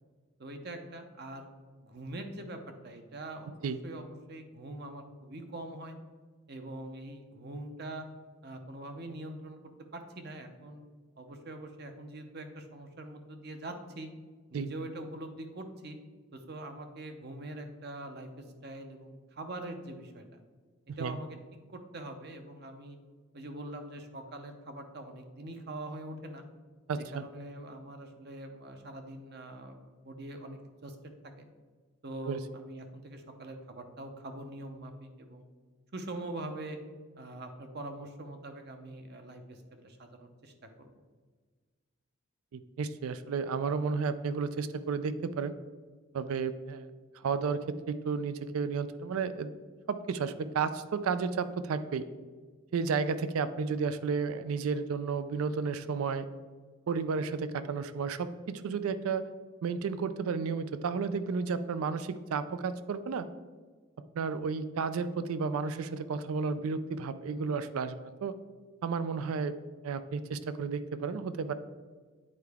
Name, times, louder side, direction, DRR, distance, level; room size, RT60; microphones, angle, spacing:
voice 1, 0.4-1.5 1.8-6.0 6.5-8.0 8.4-9.6 9.9-10.8 11.2-14.1 14.5-16.0 16.3-18.3 18.6-20.2 21.0-21.4 21.7-23.0 23.3-26.4 27.0-31.0 31.4-31.5 32.0-35.4 35.9-36.8 37.2-40.9, right 1 dB, 50° right, 6 dB, 0.7 m, -43 dB
voice 2, 26.9-27.3 32.3-32.4 42.5-45.5 46.1-46.9 47.1-49.5 49.9-52.1 52.7-56.3 56.9-59.2 59.6-63.3 64.1-68.3 68.8-69.5 69.8-71.5, right 5 dB, 85° right, 12 dB, 0.4 m, -32 dB
8.6 x 4.6 x 3.5 m, 1.5 s
head